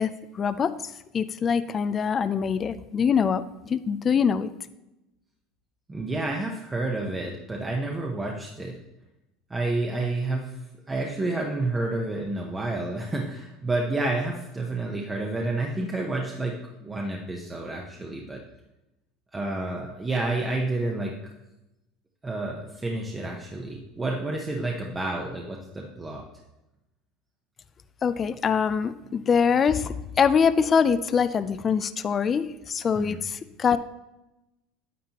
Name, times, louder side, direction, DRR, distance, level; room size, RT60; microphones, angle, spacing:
voice 1, 0.0-4.5 28.0-33.8, left 6 dB, 25° left, 12 dB, 0.4 m, -24 dB
voice 2, 5.9-8.8 9.5-10.5 10.9-18.4 19.3-21.1 22.2-26.2 32.9-33.2, right 2 dB, 15° right, 0 dB, 0.8 m, -29 dB
9.3 x 8.6 x 2.9 m, 0.94 s
supercardioid pair, 135°, 0 cm